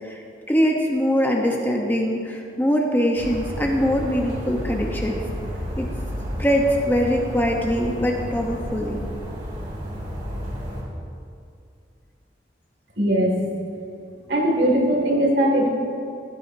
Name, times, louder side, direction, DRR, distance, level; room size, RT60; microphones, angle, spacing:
voice 1, 0.0-5.2 5.8-5.9 6.4-9.0, equal, 10° left, 0 dB, 0.8 m, -22 dB
sound 1, 3.2-10.8, equal, 40° right, 2.4 m, -31 dB
voice 2, 13.0-13.4 14.3-15.7, right 1 dB, 60° right, 0 dB, 2.0 m, -19 dB
15.0 x 11.0 x 2.6 m, 2.4 s
head